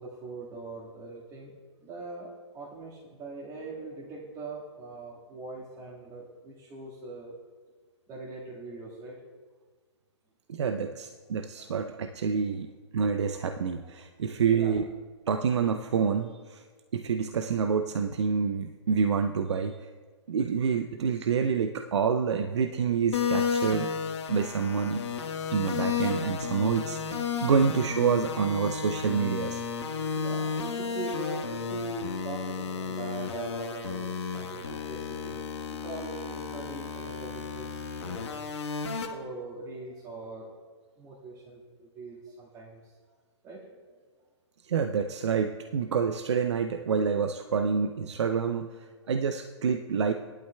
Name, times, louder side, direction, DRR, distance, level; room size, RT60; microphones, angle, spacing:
voice 1, 0.0-1.5 1.8-7.4 8.1-9.2 11.5-11.7 14.5-14.8 27.3-27.5 30.1-35.4 35.7-38.3 38.8-40.5 41.0-43.1 43.4-44.0, right 3 dB, 20° right, -6 dB, 1.8 m, -42 dB
voice 2, 10.5-14.8 15.3-16.6 16.9-19.9 20.3-23.9 24.3-25.0 25.5-29.6 44.6-48.7 49.1-50.1, right 6 dB, 70° right, 7 dB, 0.6 m, -27 dB
sound 1, 23.1-39.1, left 6 dB, 65° left, 1.3 m, -33 dB
16.5 x 11.5 x 2.3 m, 1.5 s
hypercardioid pair, 130°, 15 cm